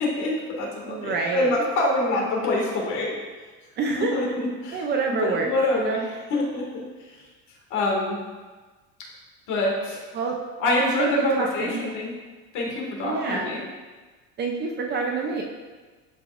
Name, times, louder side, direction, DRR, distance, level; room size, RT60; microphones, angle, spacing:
voice 1, 0.0-3.2 3.9-6.8 7.7-8.2 9.5-10.0 10.6-12.1 12.5-13.6, left 1 dB, 50° left, -2 dB, 2.0 m, -26 dB
voice 2, 0.9-1.5 3.8-4.2 4.7-5.5 5.8-6.1 10.1-10.3 11.0-11.9 13.0-13.5 14.4-15.4, right 4 dB, 30° right, 1 dB, 0.5 m, -27 dB
12.5 x 5.1 x 2.5 m, 1.3 s
cardioid pair, 175°, 36 cm